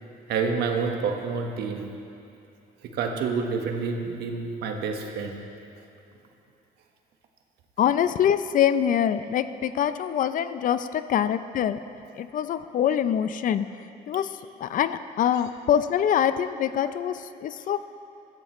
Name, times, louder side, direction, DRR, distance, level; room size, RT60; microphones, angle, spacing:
voice 1, 0.3-1.9 2.8-5.4, right 5 dB, 75° right, 3 dB, 1.4 m, -28 dB
voice 2, 7.8-11.8 12.2-13.7 14.1-14.3 14.6-17.9, left 9 dB, 50° left, 12 dB, 0.5 m, -24 dB
15.0 x 14.5 x 3.1 m, 2.8 s
cardioid pair, 110°, 17 cm